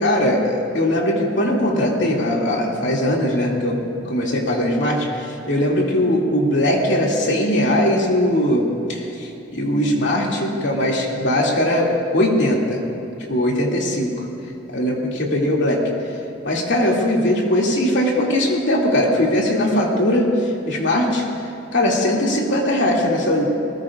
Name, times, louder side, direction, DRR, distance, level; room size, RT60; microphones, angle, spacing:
voice 1, 0.0-3.8 4.1-12.8 13.3-14.1 14.7-15.8 16.4-20.3 20.7-21.2 21.7-23.5, left 1 dB, 70° left, -2 dB, 2.5 m, -20 dB
20.5 x 19.5 x 2.5 m, 3.0 s
head